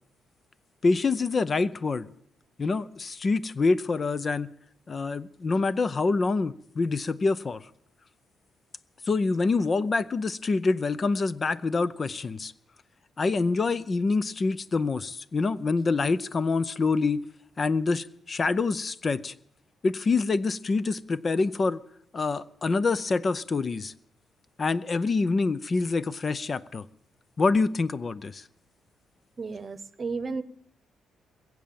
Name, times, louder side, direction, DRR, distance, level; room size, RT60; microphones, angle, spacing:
voice 1, 0.8-2.1 2.6-4.5 4.9-7.7 9.1-12.5 13.2-17.2 17.6-19.3 19.8-21.8 22.1-23.9 24.6-26.9 27.4-28.4, left 3 dB, 35° left, 16 dB, 0.6 m, -26 dB
voice 2, 29.4-30.4, right 4 dB, 35° right, 15 dB, 1.0 m, -33 dB
21.5 x 7.6 x 8.7 m, 0.71 s
cardioid pair, 90°, 0 cm